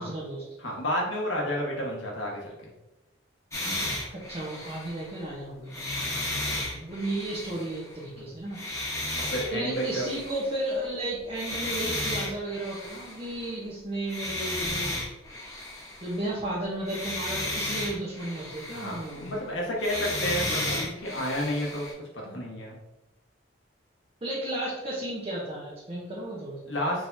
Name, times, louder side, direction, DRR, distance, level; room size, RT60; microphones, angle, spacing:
voice 1, 0.0-0.4 4.1-8.6 9.5-15.0 16.0-19.3 24.2-26.6, right 1 dB, 30° right, -6 dB, 0.9 m, -34 dB
voice 2, 0.6-2.7 8.2-8.3 9.3-10.0 18.7-21.9 22.1-22.8 26.7-27.1, equal, 75° left, -2 dB, 1.4 m, -31 dB
sound 1, 3.5-5.2 5.7-8.0 8.5-10.9 11.2-13.5 14.1-16.5 16.8-19.5 19.8-21.9, left 1 dB, 15° left, 1.1 m, -34 dB
4.7 x 3.5 x 2.7 m, 0.97 s
head